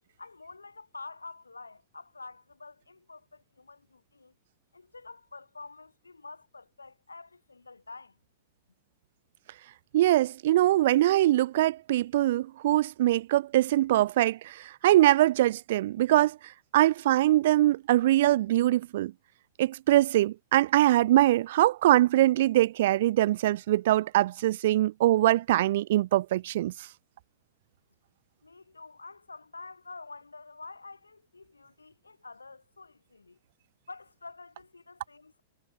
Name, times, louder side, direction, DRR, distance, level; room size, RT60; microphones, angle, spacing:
voice 1, 0.2-4.3 4.7-8.2 28.4-33.4 33.9-35.4, left 3 dB, 80° left, 7.6 m, -48 dB
voice 2, 9.9-19.1 19.6-26.9, right 14 dB, 50° right, 0.5 m, -23 dB
figure-of-eight pair, 100°, 0 cm